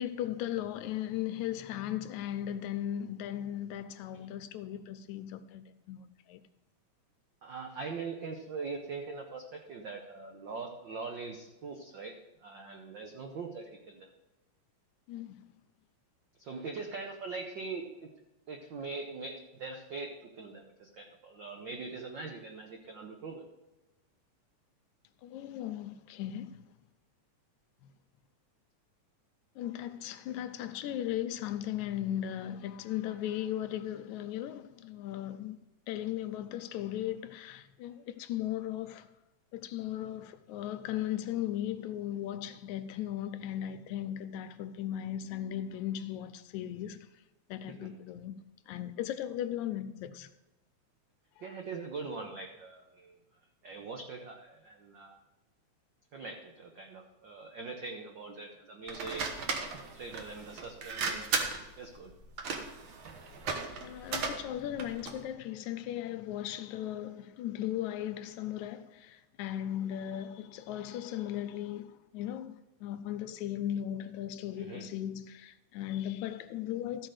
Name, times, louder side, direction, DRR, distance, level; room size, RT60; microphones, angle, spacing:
voice 1, 0.0-6.4 15.1-15.5 25.2-26.7 27.8-27.9 29.6-39.1 39.5-47.1 47.5-48.4 48.7-50.3 51.4-51.5 63.8-77.1, left 11 dB, 80° left, 2.0 m, -37 dB
voice 2, 7.4-9.4 9.7-12.1 12.4-14.1 16.4-18.1 18.5-20.1 20.4-23.5 51.4-53.2 53.6-55.2 56.1-59.2 59.7-61.4 61.8-62.1 74.6-74.9, right 4 dB, 85° right, 1.0 m, -42 dB
sound 1, 58.9-65.2, right 4 dB, 60° right, 1.4 m, -36 dB
13.5 x 4.6 x 6.4 m
omnidirectional pair, 3.4 m